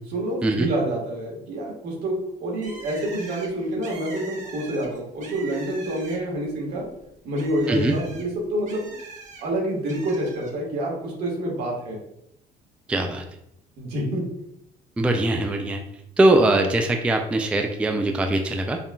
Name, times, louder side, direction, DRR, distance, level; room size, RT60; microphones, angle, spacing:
voice 1, 0.1-2.1 2.4-6.9 7.2-8.9 9.4-12.0 13.8-14.2, right 1 dB, 75° right, -2 dB, 1.5 m, -27 dB
Bird, 2.6-6.5 6.8-9.4 9.9-10.5, right 3 dB, 45° right, 0.9 m, -42 dB
voice 2, 12.9-13.2 15.0-15.8 16.2-18.8, right 2 dB, 5° right, 4 dB, 0.3 m, -21 dB
5.4 x 2.4 x 2.2 m, 0.79 s
cardioid pair, 110°, 17 cm